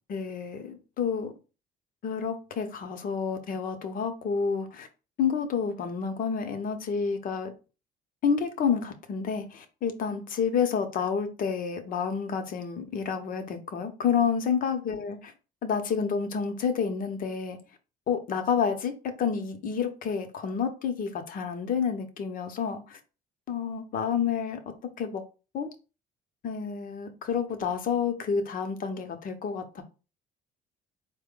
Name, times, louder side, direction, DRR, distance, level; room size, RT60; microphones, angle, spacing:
voice 1, 0.1-1.3 2.0-4.9 5.2-7.5 8.2-15.3 15.6-17.6 18.1-23.0 23.5-24.6 25.0-25.2 25.5-25.7 26.4-29.8, left 6 dB, 55° left, 0.8 m, -29 dB
4.3 x 2.2 x 3.7 m
cardioid pair, 110°, 17 cm